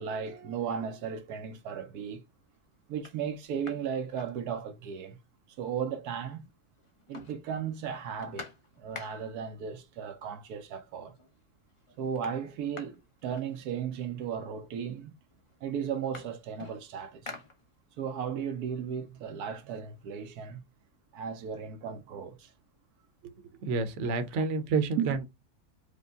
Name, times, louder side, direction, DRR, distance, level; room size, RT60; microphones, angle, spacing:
voice 1, 0.0-2.2 2.9-5.2 5.6-6.5 7.1-8.5 8.8-11.1 12.0-15.2 15.6-17.4 18.0-20.6 21.1-22.5 24.0-24.4 25.0-25.2, right 7 dB, 80° right, 1.2 m, -35 dB
sound 1, 1.5-2.0 2.5-2.6 2.9-5.0 5.3-5.4 5.7-6.5 6.8-9.5 10.4-10.5 10.9-11.4 11.7-14.1 14.9-15.0 15.3-18.1 18.5-20.3, left 3 dB, 35° left, 0.5 m, -49 dB
voice 2, 23.6-25.2, right 4 dB, 55° right, 1.0 m, -29 dB
5.2 x 2.1 x 3.6 m
omnidirectional pair, 1.6 m